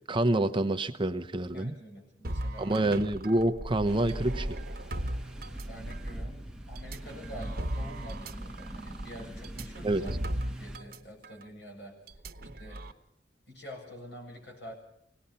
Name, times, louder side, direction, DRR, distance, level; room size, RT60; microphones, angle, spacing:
voice 1, 0.1-1.7 2.6-4.6 9.8-10.0, right 1 dB, 30° right, 9 dB, 0.7 m, -27 dB
voice 2, 1.5-2.7 5.7-10.2 10.4-12.0 12.6-12.9 13.5-14.7, equal, 75° left, 2 dB, 7.9 m, -46 dB
sound 1, 2.2-6.1 6.8-11.0 11.2-11.4 12.1-12.9, right 1 dB, 55° right, 1.1 m, -37 dB
sound 2, 3.9-10.8, right 1 dB, 5° right, 1.0 m, -42 dB
25.0 x 19.0 x 5.7 m, 0.74 s
head